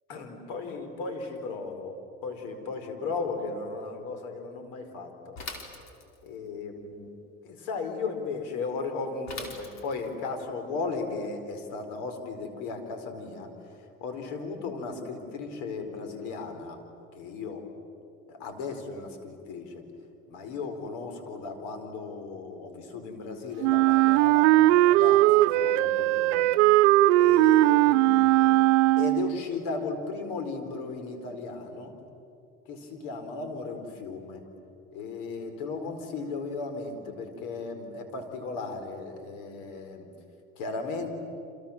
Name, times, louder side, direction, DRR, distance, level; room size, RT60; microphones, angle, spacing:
voice 1, 0.1-5.4 6.2-7.1 7.4-13.5 14.0-16.8 17.1-17.7 18.3-19.8 20.3-26.5 27.1-28.6 29.0-31.9 32.7-34.4 34.9-40.0 40.6-41.2, left 4 dB, 70° left, 6 dB, 4.7 m, -36 dB
Bicycle / Mechanisms, 5.4-6.4 9.3-10.2, left 3 dB, 45° left, 4.7 m, -41 dB
Wind instrument woodwind instrument, 23.6-29.4, right 16 dB, 75° right, 0.7 m, -20 dB
30.0 x 27.0 x 7.4 m, 2.7 s
hypercardioid pair, 75°, 36 cm